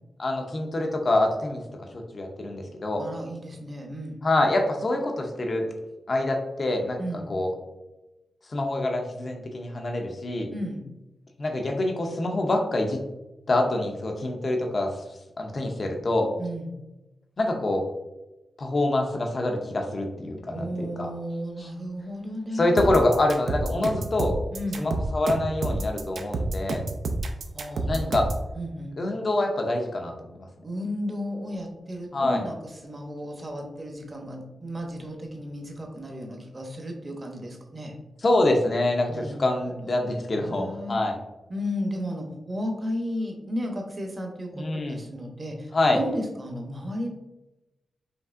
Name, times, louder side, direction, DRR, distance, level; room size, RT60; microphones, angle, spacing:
voice 1, 0.2-1.6 1.9-3.0 4.2-5.7 6.1-7.0 7.3-7.5 8.5-10.5 11.4-13.0 13.5-14.9 15.4-16.3 17.4-17.8 18.6-21.1 21.6-21.7 22.5-24.3 24.8-26.8 27.9-28.3 29.0-30.5 32.1-32.4 38.2-41.2 44.6-45.0 45.7-46.0, left 2 dB, 40° left, 3 dB, 0.7 m, -25 dB
voice 2, 3.0-4.2 7.0-7.2 10.5-10.8 16.4-16.8 20.5-23.0 24.5-24.9 27.5-28.1 28.5-29.0 30.6-37.9 39.1-41.0 41.5-47.1, equal, 30° right, 2 dB, 0.8 m, -34 dB
sound 1, 22.8-28.4, right 2 dB, 70° right, 0.5 m, -29 dB
5.2 x 3.2 x 2.5 m, 1.0 s
wide cardioid pair, 125°, 0 cm